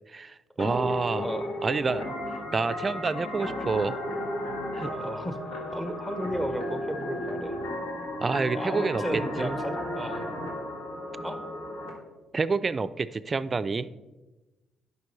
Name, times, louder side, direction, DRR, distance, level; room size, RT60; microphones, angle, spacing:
voice 1, 0.1-1.2 1.6-2.0 2.5-4.0 4.7-4.9 8.2-9.0 9.4-9.6 12.3-13.9, right 4 dB, 35° right, 14 dB, 0.3 m, -28 dB
sound 1, 0.6-11.9, left 1 dB, 85° left, 1.8 m, -34 dB
voice 2, 0.6-0.9 1.2-1.5 4.9-5.4 5.7-7.5 8.5-10.4 11.2-11.4, equal, 5° left, 7 dB, 0.9 m, -34 dB
11.0 x 5.2 x 3.2 m, 1.1 s
cardioid pair, 90°, 0 cm